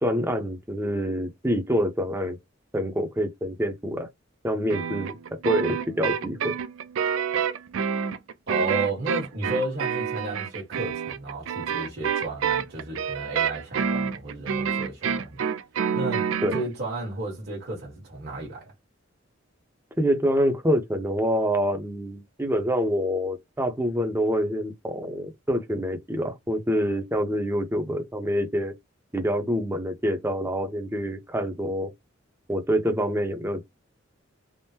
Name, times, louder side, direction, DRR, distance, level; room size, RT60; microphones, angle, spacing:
voice 1, 0.0-2.4 2.7-4.1 4.4-5.1 5.4-6.5 16.4-16.5 20.0-28.7 29.1-31.9 32.5-33.7, equal, 10° right, 0.7 m, -26 dB
sound 1, 4.7-16.7, right 7 dB, 85° right, 0.4 m, -28 dB
voice 2, 8.5-15.4 15.9-18.7, right 2 dB, 55° right, 1.3 m, -33 dB
3.6 x 2.0 x 2.8 m
head